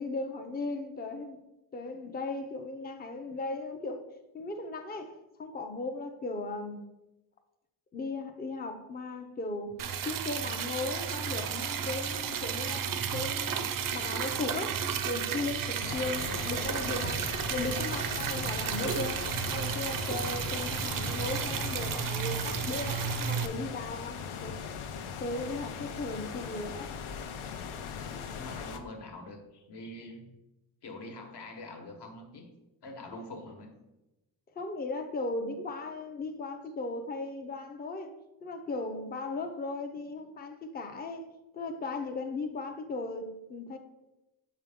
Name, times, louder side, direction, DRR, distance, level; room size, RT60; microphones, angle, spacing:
voice 1, 0.0-1.4 1.7-4.0 4.3-6.8 7.9-9.8 10.0-12.9 13.1-13.6 13.9-19.2 19.5-24.6 25.2-26.9 33.1-33.2 34.6-38.1 38.4-41.2 41.5-43.8, left 3 dB, 20° left, 0.5 m, -37 dB
Liquid, 9.8-23.5, right 7 dB, 45° right, 0.4 m, -33 dB
sound 1, 15.8-28.8, left 6 dB, 80° left, 0.7 m, -39 dB
voice 2, 28.3-30.4 30.8-32.5 32.8-33.7, left 2 dB, 55° left, 1.2 m, -45 dB
6.5 x 4.6 x 3.5 m
wide cardioid pair, 130°, 49 cm